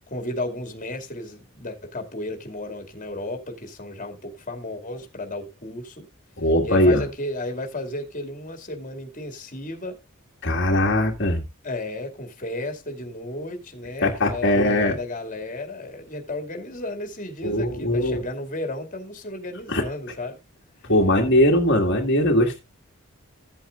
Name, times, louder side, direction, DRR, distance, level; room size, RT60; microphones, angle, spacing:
voice 1, 0.1-6.1 6.6-10.0 11.6-20.4 20.8-20.9, left 1 dB, 35° left, 2.4 m, -33 dB
voice 2, 6.4-7.1 10.4-11.4 14.0-15.0 17.4-18.2 19.7-19.8 20.8-22.6, left 1 dB, 55° left, 2.1 m, -20 dB
16.0 x 8.7 x 2.5 m
head